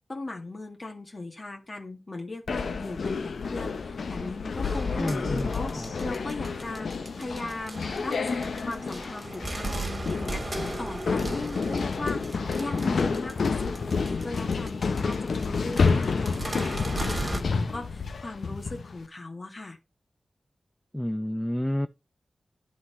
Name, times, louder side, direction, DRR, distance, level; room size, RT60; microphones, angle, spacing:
voice 1, 0.1-19.8, left 2 dB, 40° left, 1.8 m, -38 dB
sound 1, 2.5-18.9, left 4 dB, 80° left, 0.9 m, -29 dB
sound 2, 4.6-17.4, right 2 dB, 35° right, 2.1 m, -38 dB
voice 2, 5.0-5.9 20.9-21.9, left 1 dB, 10° left, 0.4 m, -30 dB
10.0 x 4.1 x 5.5 m
wide cardioid pair, 90°, 0 cm